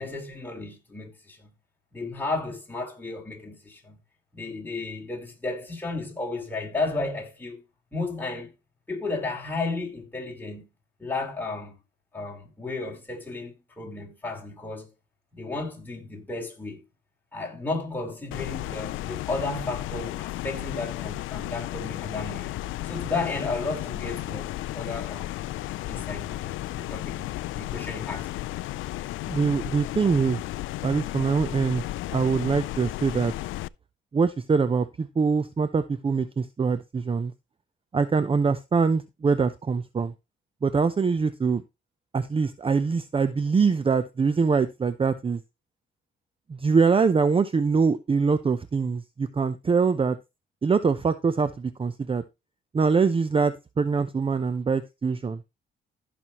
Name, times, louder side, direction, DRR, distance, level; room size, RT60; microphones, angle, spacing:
voice 1, 0.0-1.5 1.9-4.0 4.3-7.6 7.9-8.5 8.9-10.7 11.0-11.7 12.1-14.9 15.3-16.8 17.3-22.5 22.8-25.3 25.9-28.3, left 3 dB, 10° left, 4.4 m, -33 dB
sound 1, 18.3-33.7, left 16 dB, 80° left, 0.4 m, -34 dB
voice 2, 29.3-30.4 30.8-33.3 34.1-37.3 37.9-40.1 40.6-41.6 42.1-45.4 46.5-50.2 50.6-52.2 52.7-55.4, right 5 dB, 25° right, 0.7 m, -24 dB
15.0 x 6.1 x 3.0 m
cardioid pair, 90°, 20 cm